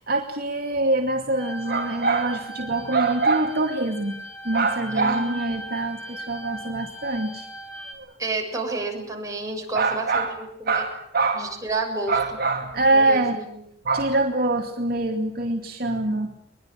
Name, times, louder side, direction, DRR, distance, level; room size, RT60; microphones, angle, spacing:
voice 1, 0.0-4.1 4.4-7.5 7.9-8.1 9.7-10.3 10.6-11.5 12.1-13.4 13.8-16.3, right 2 dB, 55° right, 3 dB, 2.5 m, -24 dB
sound 1, 1.4-7.9, right 1 dB, 15° left, 5.4 m, -38 dB
voice 2, 5.0-5.4 8.2-10.8 11.4-12.1 12.9-13.6, right 3 dB, 20° right, 1 dB, 7.1 m, -30 dB
23.5 x 22.0 x 9.0 m, 0.69 s
head